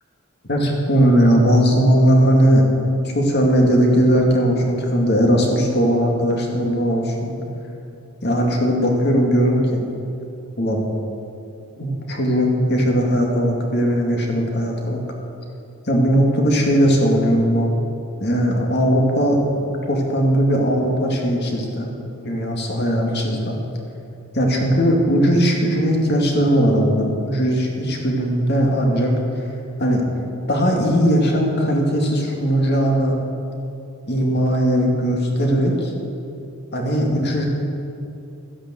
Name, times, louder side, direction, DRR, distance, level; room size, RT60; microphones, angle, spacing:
voice 1, 0.5-2.7 3.0-7.3 8.2-9.8 10.6-10.8 11.8-15.0 15.8-17.7 18.2-19.4 19.9-21.9 22.2-23.5 24.3-29.5 29.8-30.0 30.5-33.2 34.1-35.9 36.7-37.5, equal, 45° left, 0 dB, 2.3 m, -18 dB
13.0 x 10.0 x 7.7 m, 2.7 s
head